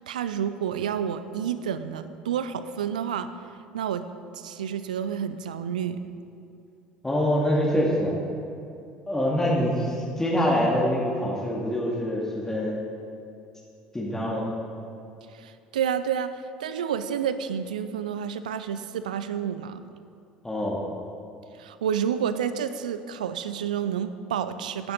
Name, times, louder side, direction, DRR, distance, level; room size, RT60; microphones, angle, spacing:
voice 1, 0.1-3.3 3.7-4.0 4.3-6.1 15.3-19.8 21.6-24.9, right 8 dB, 70° right, 12 dB, 0.6 m, -29 dB
voice 2, 7.0-8.1 9.1-12.8 13.9-14.5 20.4-20.8, equal, 10° left, -4 dB, 2.2 m, -25 dB
15.5 x 10.5 x 4.0 m, 2.6 s
figure-of-eight pair, 60°, 4 cm